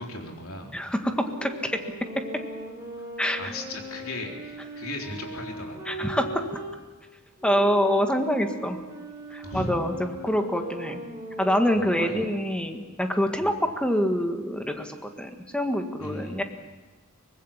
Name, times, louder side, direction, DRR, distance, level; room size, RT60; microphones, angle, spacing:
voice 1, 0.0-0.8 3.4-6.0 9.4-9.7 11.7-12.3 13.4-13.5 16.0-16.4, left 1 dB, 70° left, 1 dB, 3.9 m, -37 dB
voice 2, 0.7-1.8 2.1-2.2 3.2-3.5 5.9-6.4 7.4-8.8 9.3-11.0 11.4-16.4, equal, 5° left, 5 dB, 1.7 m, -26 dB
sound 1, 1.3-6.8 7.4-12.6, right 1 dB, 15° right, 6.4 m, -39 dB
24.0 x 20.0 x 7.3 m, 1.2 s
head